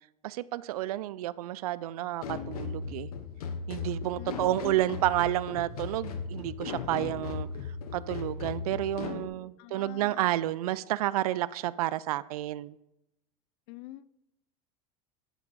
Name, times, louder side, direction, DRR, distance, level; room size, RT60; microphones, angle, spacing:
voice 1, 0.2-3.1 3.7-7.5 7.9-12.8, right 15 dB, 85° right, 18 dB, 0.5 m, -30 dB
sound 1, 2.2-9.3, left 5 dB, 85° left, 1.2 m, -37 dB
voice 2, 9.6-10.3 13.7-14.1, left 16 dB, 65° left, 18 dB, 0.5 m, -46 dB
10.0 x 6.9 x 4.1 m, 0.85 s
supercardioid pair, 110°, 19 cm